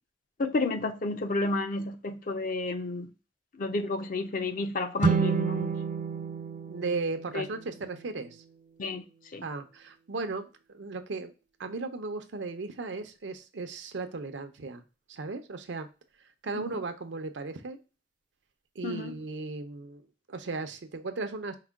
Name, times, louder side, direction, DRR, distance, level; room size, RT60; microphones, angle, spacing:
voice 1, 0.4-3.1 3.5-5.7 7.3-7.5 8.8-9.0 9.3-9.4 16.5-16.7 18.8-19.1, left 2 dB, 50° left, 0.5 m, -31 dB
sound 1, 5.0-8.3, right 5 dB, 45° right, 0.4 m, -30 dB
voice 2, 6.7-8.4 9.4-11.3 11.6-14.8 15.1-15.9 16.4-17.8 18.8-21.5, right 3 dB, 90° right, 0.6 m, -36 dB
4.7 x 2.2 x 3.5 m
head